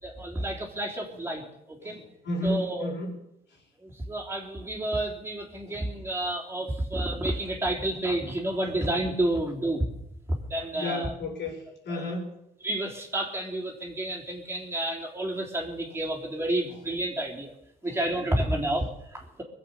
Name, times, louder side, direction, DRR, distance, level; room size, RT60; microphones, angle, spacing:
voice 1, 0.0-2.0 2.4-2.9 3.8-9.9 10.5-11.1 11.9-12.1 12.6-17.5 17.8-19.4, right 1 dB, 10° right, -2 dB, 3.7 m, -30 dB
voice 2, 1.8-3.1 5.6-5.9 6.6-6.7 7.9-8.0 8.6-8.7 9.3-9.4 10.7-12.3 16.7-16.8 17.8-18.0 18.5-18.7, left 1 dB, 60° left, 0 dB, 5.4 m, -34 dB
23.0 x 8.0 x 7.1 m, 0.81 s
cardioid pair, 90°, 20 cm